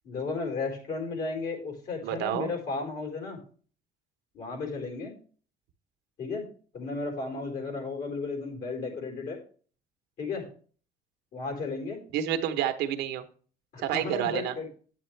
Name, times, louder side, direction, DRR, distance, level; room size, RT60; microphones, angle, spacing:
voice 1, 0.0-3.4 4.3-5.1 6.2-6.4 6.7-9.4 10.2-10.5 11.3-12.0 13.7-14.7, left 4 dB, 60° left, 2 dB, 4.3 m, -34 dB
voice 2, 2.0-2.5 12.1-13.2 13.8-14.5, right 10 dB, 90° right, 8 dB, 1.0 m, -29 dB
8.8 x 8.4 x 3.2 m, 0.41 s
cardioid pair, 110°, 17 cm